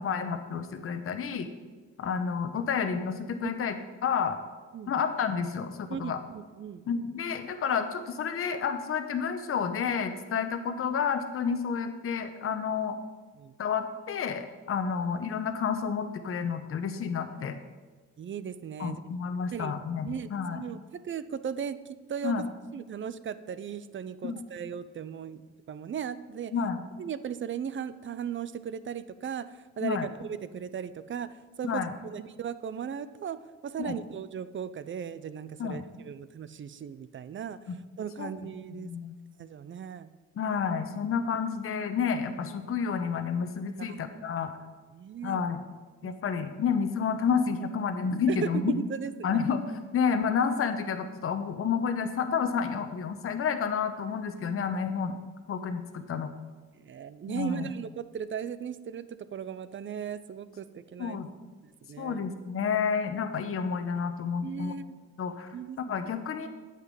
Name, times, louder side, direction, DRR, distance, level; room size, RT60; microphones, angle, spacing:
voice 1, 0.0-1.5 2.0-4.4 4.9-6.2 6.9-13.0 13.6-17.6 18.8-20.7 22.2-22.4 24.2-24.4 26.5-26.8 29.8-30.1 31.6-31.9 33.8-34.0 35.6-35.8 37.7-37.8 38.2-38.3 38.8-39.2 40.4-44.5 45.2-45.6 46.0-48.8 49.2-49.6 49.9-55.1 55.5-56.3 57.3-57.7 61.0-61.3 62.0-64.8 65.2-65.5 65.9-66.5, left 6 dB, 45° left, 8 dB, 0.9 m, -30 dB
voice 2, 5.9-6.8 13.4-13.6 18.2-19.0 19.5-19.7 20.0-26.5 27.0-33.4 33.6-38.9 39.4-40.1 43.8-44.2 44.9-45.4 46.0-46.1 48.3-49.4 56.7-61.2 61.6-62.2 64.4-64.9 65.5-66.0, right 7 dB, 40° right, 14 dB, 0.6 m, -37 dB
9.0 x 5.9 x 7.6 m, 1.4 s
cardioid pair, 90°, 30 cm